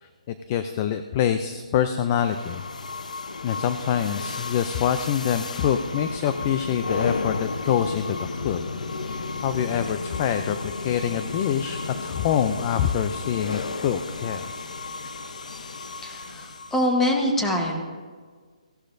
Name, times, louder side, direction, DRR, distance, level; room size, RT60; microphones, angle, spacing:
voice 1, 0.0-2.6 3.4-8.6 9.0-14.5, left 9 dB, 25° left, 9 dB, 0.4 m, -26 dB
sound 1, 2.1-16.9, left 3 dB, 85° left, 0.8 m, -33 dB
voice 2, 16.0-17.8, left 1 dB, 5° left, 1 dB, 1.1 m, -24 dB
17.0 x 11.5 x 2.6 m, 1.5 s
hypercardioid pair, 165°, 4 cm